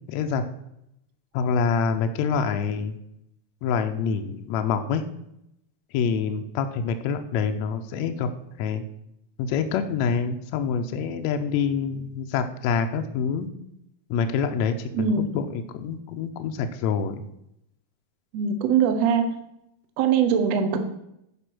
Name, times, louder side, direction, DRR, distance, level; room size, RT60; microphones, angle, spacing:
voice 1, 0.1-0.4 1.3-3.0 3.6-5.0 5.9-8.3 8.6-8.8 9.4-13.5 14.1-17.2, left 6 dB, 80° left, 6 dB, 1.7 m, -26 dB
voice 2, 14.9-15.3 18.3-19.2 20.0-20.8, right 7 dB, 65° right, 7 dB, 1.8 m, -21 dB
9.9 x 5.3 x 6.0 m, 0.80 s
omnidirectional pair, 3.8 m